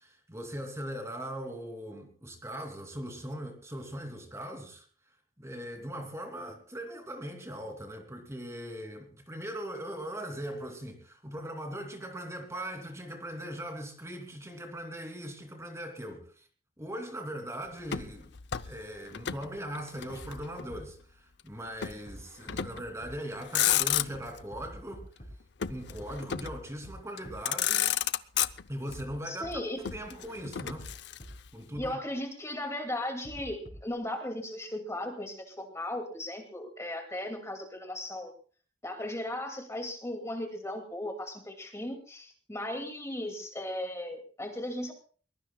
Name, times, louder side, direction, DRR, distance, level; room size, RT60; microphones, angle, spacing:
voice 1, 0.0-4.8 5.4-16.5 16.8-18.3 18.7-25.0 25.7-27.9 28.7-29.5 29.8-30.9 31.5-32.0, equal, 15° right, 3.0 m, -40 dB
Motor vehicle (road), 17.9-19.5 19.8-20.8 21.8-22.0 22.5-22.9 23.4-24.4 25.6-26.7 27.2-27.3 27.5-29.0 29.8-31.5, left 11 dB, 65° left, 0.7 m, -31 dB
sound 1, 20.2-20.4 20.7-20.8 22.1-22.2 22.5-22.6 23.0-23.1 24.5-25.3 25.9-26.1 26.4-26.5 26.8-26.9 27.2-27.3 28.9-29.1 29.4-29.5 30.8-30.9 31.2-31.3 31.7-31.8 33.2-33.9, equal, 40° left, 5.5 m, -46 dB
voice 2, 29.2-29.8 31.8-38.3 38.8-44.9, left 1 dB, 15° left, 2.4 m, -36 dB
22.5 x 21.5 x 2.3 m
head